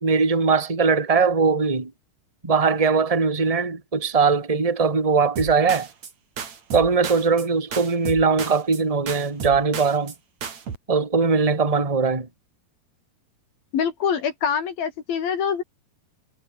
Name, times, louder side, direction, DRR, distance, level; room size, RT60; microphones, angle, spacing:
voice 1, 0.0-1.9 2.4-5.9 6.7-10.1 10.9-12.3, right 5 dB, 10° right, 1.9 m, -20 dB
sound 1, 5.4-6.1 6.4-7.5 7.7-8.8 9.1-10.2 10.4-10.8, right 6 dB, 45° right, 4.0 m, -33 dB
voice 2, 13.7-15.6, left 7 dB, 65° left, 4.5 m, -24 dB
omnidirectional pair, 4.6 m